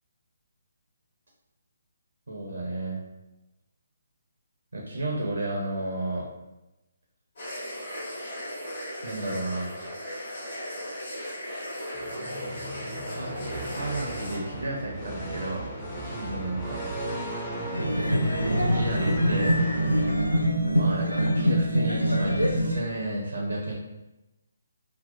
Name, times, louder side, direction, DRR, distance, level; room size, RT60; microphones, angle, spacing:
voice 1, 2.3-3.0 4.7-6.3 9.0-9.7 13.1-13.3 13.7-15.7 16.0-16.8 18.6-19.5 20.7-23.7, right 2 dB, 65° right, -3 dB, 0.5 m, -32 dB
sound 1, 7.4-14.4, equal, 50° left, 1.0 m, -37 dB
sound 2, 11.9-20.6, right 1 dB, 15° left, 0.5 m, -36 dB
sound 3, 17.7-22.8, equal, 90° left, 0.4 m, -24 dB
2.6 x 2.1 x 2.2 m, 0.97 s
figure-of-eight pair, 140°, 0 cm